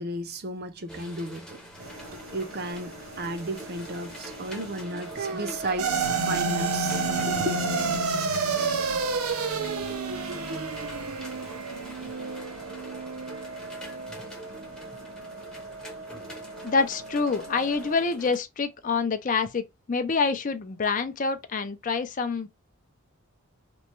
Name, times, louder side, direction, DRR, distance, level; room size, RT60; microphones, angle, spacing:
voice 1, 0.0-7.6, right 1 dB, 45° right, 0.6 m, -34 dB
sound 1, 0.9-18.4, equal, 5° left, 0.7 m, -46 dB
sound 2, 1.8-17.9, right 2 dB, 65° right, 1.1 m, -41 dB
sound 3, 5.8-14.3, right 4 dB, 80° right, 0.7 m, -29 dB
voice 2, 16.6-22.5, left 4 dB, 35° left, 0.4 m, -27 dB
3.0 x 2.2 x 4.2 m
head